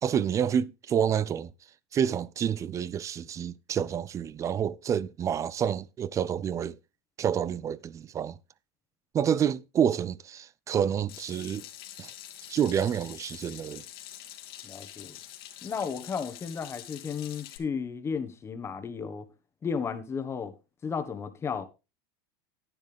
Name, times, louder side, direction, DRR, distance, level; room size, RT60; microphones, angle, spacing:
voice 1, 0.0-1.5 1.9-6.8 7.2-8.4 9.1-11.7 12.0-12.1 12.5-13.8, right 8 dB, 25° right, 0.5 m, -28 dB
Water tap faucet / Sink (filling or washing), 11.1-17.6, left 12 dB, 75° left, 2.2 m, -46 dB
voice 2, 14.6-15.2 15.6-19.3 19.6-20.5 20.8-21.6, left 6 dB, 20° left, 1.3 m, -34 dB
10.5 x 9.6 x 3.4 m
supercardioid pair, 130°, 13 cm